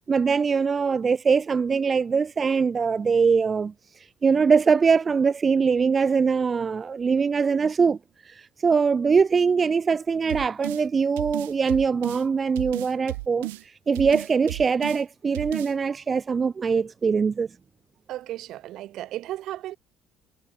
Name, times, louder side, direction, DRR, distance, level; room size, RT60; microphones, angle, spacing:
voice 1, 0.1-3.7 4.2-8.0 8.3-13.5 13.9-17.5, right 5 dB, 40° right, 0.7 m, -22 dB
sound 1, 10.3-10.8 11.2-12.2 12.6-13.6 14.0-15.0 15.3-15.7, right 21 dB, 90° right, 1.0 m, -34 dB
voice 2, 18.1-19.8, right 14 dB, 70° right, 2.5 m, -35 dB
hypercardioid pair, 65°, 0 cm